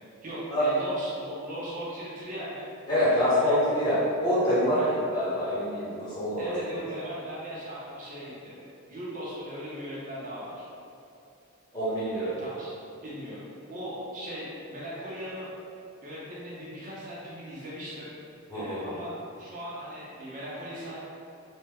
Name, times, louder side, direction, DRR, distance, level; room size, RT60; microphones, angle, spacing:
voice 1, 0.2-2.7 3.1-3.6 4.7-4.9 6.4-8.5 8.9-10.7 12.1-12.7 13.0-13.4 13.7-15.5 16.0-18.1 18.5-21.0, equal, 35° right, -8 dB, 0.5 m, -38 dB
voice 2, 2.9-6.5 11.7-12.3 18.5-18.9, equal, 20° left, -12 dB, 0.8 m, -26 dB
3.1 x 2.0 x 3.4 m, 2.5 s
head